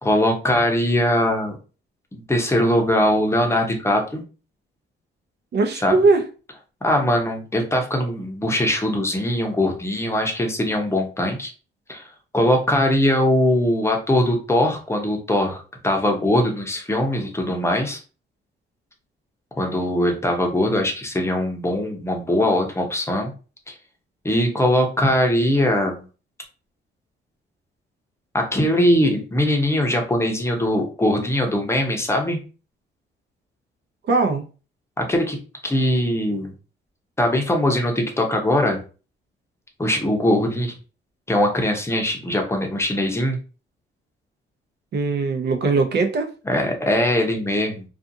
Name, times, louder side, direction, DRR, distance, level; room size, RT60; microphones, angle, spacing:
voice 1, 0.0-1.6 2.1-4.2 5.8-5.9 6.8-11.5 11.9-12.1 12.3-18.0 19.6-23.3 23.7-23.8 24.2-26.0 28.3-32.4 35.0-35.4 35.6-36.5 37.2-38.8 39.8-40.7 41.3-43.4 46.5-47.8, left 1 dB, 15° left, 2 dB, 0.8 m, -21 dB
voice 2, 5.5-6.3 34.1-34.5 44.9-46.3, right 3 dB, 60° right, 5 dB, 0.7 m, -20 dB
2.5 x 2.4 x 2.7 m, 0.35 s
cardioid pair, 90°, 20 cm